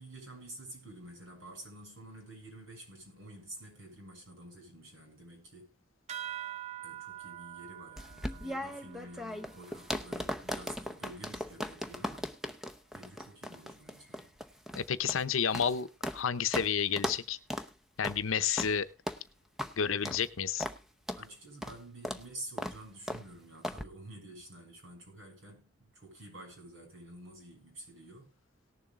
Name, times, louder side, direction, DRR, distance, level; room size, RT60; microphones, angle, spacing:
voice 1, 0.0-5.7 6.8-12.3 12.9-14.3 21.2-28.3, right 1 dB, 75° right, 6.9 m, -49 dB
sound 1, 6.1-11.0, right 12 dB, 35° right, 0.8 m, -46 dB
sound 2, 8.0-16.2 16.5-16.7 17.0-17.2 17.5-17.7 18.0-18.2 18.6-18.7 19.1-19.2 19.6-19.7 20.0-20.2 20.6-20.8 21.1-21.2 21.6-21.8 22.0-22.2 22.6-22.8 23.1-23.2 23.6-23.8, equal, ahead, 0.7 m, -37 dB
voice 2, 14.7-17.4 18.0-18.9 19.8-20.7, left 7 dB, 80° left, 0.7 m, -30 dB
18.5 x 7.2 x 3.7 m
head